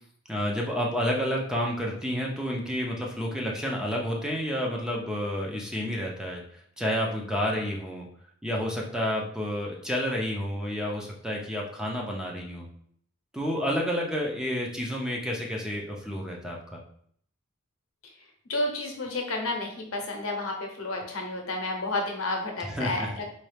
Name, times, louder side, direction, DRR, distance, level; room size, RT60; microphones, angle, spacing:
voice 1, 0.3-6.4 6.8-8.1 8.4-12.7 13.3-16.8 22.6-23.1, equal, 5° right, -2 dB, 0.5 m, -30 dB
voice 2, 18.5-23.2, left 2 dB, 75° left, 2 dB, 0.8 m, -31 dB
4.1 x 2.3 x 3.3 m, 0.62 s
head